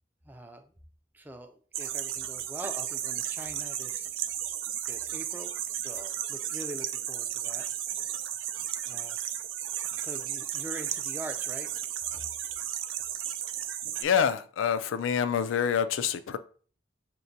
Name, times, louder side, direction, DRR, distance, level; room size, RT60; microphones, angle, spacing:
voice 1, 0.2-0.7 1.1-4.2 4.8-5.5 5.8-7.7 8.9-9.2 10.0-11.7, right 1 dB, 10° right, 0.4 m, -43 dB
sound 1, 1.7-14.0, right 10 dB, 90° right, 0.4 m, -34 dB
voice 2, 14.0-16.4, left 7 dB, 90° left, 0.4 m, -26 dB
5.9 x 2.1 x 2.7 m
head